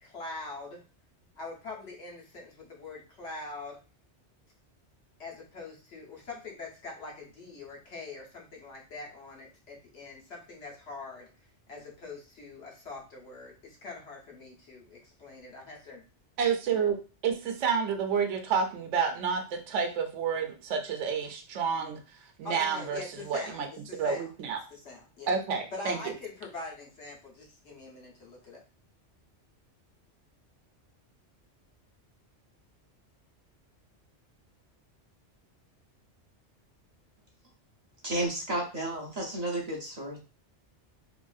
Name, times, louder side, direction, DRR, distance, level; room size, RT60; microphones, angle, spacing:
voice 1, 0.0-0.8 1.4-3.8 5.2-11.3 11.7-16.0 22.4-23.6 23.9-24.3 24.8-25.3 25.7-28.6, left 3 dB, 70° left, -2 dB, 1.2 m, -43 dB
voice 2, 16.4-24.6 25.3-26.1, right 6 dB, 85° right, 5 dB, 0.9 m, -30 dB
voice 3, 38.0-40.2, right 1 dB, 40° right, -2 dB, 0.6 m, -32 dB
2.9 x 2.5 x 2.3 m, 0.34 s
omnidirectional pair, 1.2 m